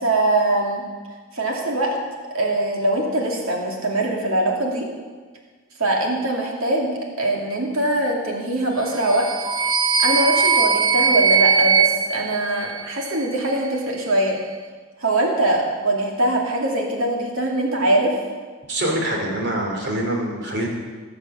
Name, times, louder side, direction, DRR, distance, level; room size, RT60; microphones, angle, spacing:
voice 1, 0.0-0.8 1.3-2.0 2.3-4.9 5.8-9.3 10.0-14.4 15.0-18.1, right 1 dB, 75° right, -1 dB, 2.5 m, -22 dB
sound 1, 8.9-13.2, right 5 dB, 20° right, 0.6 m, -20 dB
voice 2, 18.7-20.7, right 1 dB, 50° right, 0 dB, 3.1 m, -24 dB
18.5 x 6.8 x 7.2 m, 1.5 s
head